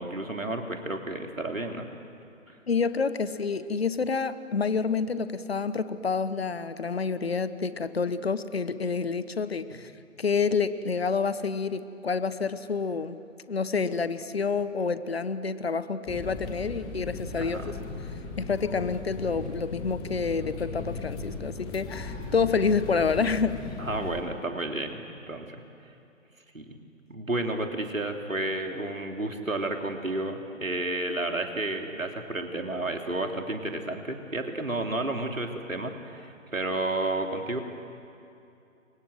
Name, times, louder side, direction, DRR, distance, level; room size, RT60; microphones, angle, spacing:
voice 1, 0.0-1.9 17.3-17.8 23.8-25.6 26.5-26.8 27.1-37.6, right 2 dB, 75° right, 3 dB, 3.3 m, -31 dB
voice 2, 2.7-9.9 10.2-13.2 13.5-17.8 18.4-23.7, left 5 dB, 50° left, 13 dB, 1.2 m, -28 dB
sound 1, 16.1-24.2, left 3 dB, 10° left, 1.3 m, -37 dB
29.5 x 24.5 x 7.9 m, 2.7 s
figure-of-eight pair, 140°, 40 cm